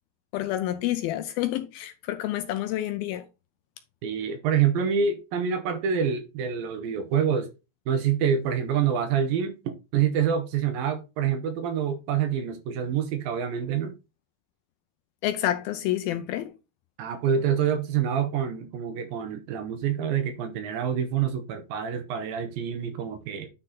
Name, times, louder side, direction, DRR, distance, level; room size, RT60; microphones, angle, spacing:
voice 1, 0.3-3.3 15.2-16.5, left 13 dB, 80° left, 2.2 m, -28 dB
voice 2, 4.0-7.5 7.9-13.9 17.0-23.5, right 8 dB, 70° right, 2.5 m, -26 dB
9.9 x 4.2 x 3.8 m
omnidirectional pair, 4.7 m